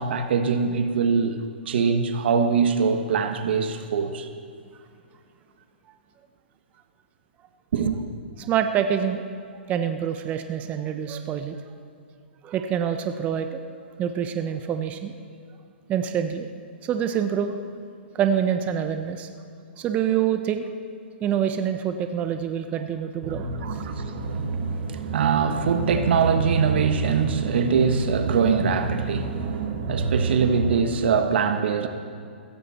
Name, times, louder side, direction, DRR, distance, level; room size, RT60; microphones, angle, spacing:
voice 1, 0.0-1.4 1.7-4.3 7.7-8.0 23.6-24.2 24.5-29.4 29.8-31.9, right 6 dB, 65° right, 7 dB, 1.3 m, -23 dB
voice 2, 8.4-9.2 9.7-11.6 12.4-13.6 14.0-15.1 15.9-16.5 16.8-17.6 18.1-19.3 19.8-20.6 21.2-23.8, right 9 dB, 25° right, 8 dB, 0.7 m, -26 dB
sound 1, 23.2-30.8, right 3 dB, 45° right, 1.8 m, -29 dB
16.0 x 15.0 x 4.3 m, 2.3 s
hypercardioid pair, 140°, 6 cm